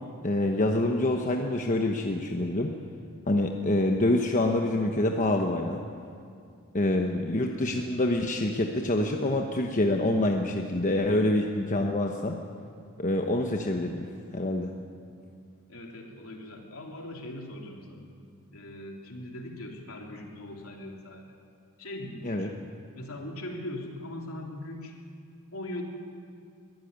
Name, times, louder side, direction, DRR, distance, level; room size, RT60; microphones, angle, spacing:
voice 1, 0.2-2.8 3.3-5.8 6.7-12.4 13.0-14.1 14.3-14.7 22.2-22.5, left 1 dB, 35° left, 2 dB, 1.1 m, -26 dB
voice 2, 15.7-18.1 18.5-21.4 21.8-22.6 22.9-25.0 25.5-25.8, left 1 dB, 65° left, 1 dB, 3.3 m, -40 dB
22.5 x 14.0 x 9.6 m, 2.3 s
head